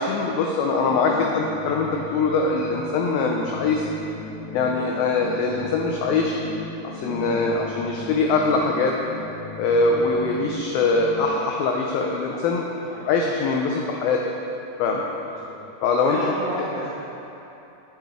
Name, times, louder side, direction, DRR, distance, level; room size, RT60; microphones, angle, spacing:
voice 1, 0.0-3.9 4.5-6.4 6.9-9.0 9.6-12.7 13.1-14.2 14.8-15.0 15.8-16.3, left 3 dB, 85° left, 1 dB, 2.1 m, -22 dB
sound 1, 0.8-11.3, left 2 dB, 55° left, 1.7 m, -37 dB
voice 2, 15.2-15.6 16.0-17.0, right 1 dB, 70° right, -9 dB, 1.5 m, -34 dB
8.8 x 7.5 x 3.6 m, 3.0 s
omnidirectional pair, 4.8 m